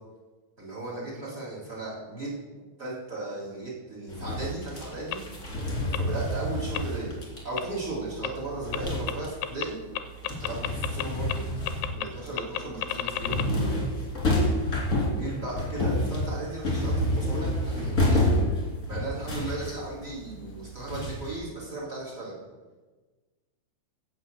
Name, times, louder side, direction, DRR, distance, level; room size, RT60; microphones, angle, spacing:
voice 1, 0.6-2.3 2.8-5.2 5.5-7.1 7.4-9.8 10.3-11.4 11.9-13.4 15.1-18.3 18.9-22.3, right 2 dB, 20° right, -3 dB, 3.2 m, -36 dB
sound 1, 4.1-9.5 9.8-21.4, left 1 dB, 25° left, 2.3 m, -29 dB
sound 2, 5.1-5.2 5.9-6.0 6.7-6.8 7.6-7.7 8.2-8.3 8.7-8.8 9.1-9.2 9.4-9.7 10.0-11.0 11.3-11.4 11.7-12.1 12.4-13.5, left 14 dB, 80° left, 2.5 m, -30 dB
16.0 x 5.6 x 6.7 m, 1.3 s
omnidirectional pair, 5.1 m